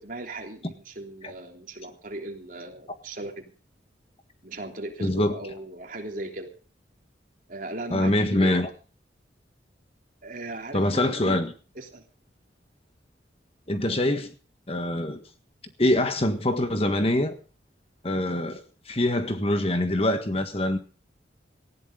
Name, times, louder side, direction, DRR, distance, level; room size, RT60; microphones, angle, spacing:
voice 1, 0.0-3.5 4.4-6.5 7.5-8.6 10.2-11.4 11.7-12.0, right 2 dB, 50° right, 3.4 m, -38 dB
voice 2, 5.0-5.4 7.9-8.7 10.7-11.5 13.7-14.3 14.7-15.2 15.8-17.3 18.0-20.8, left 1 dB, 30° left, 1.5 m, -24 dB
19.0 x 16.0 x 3.8 m
head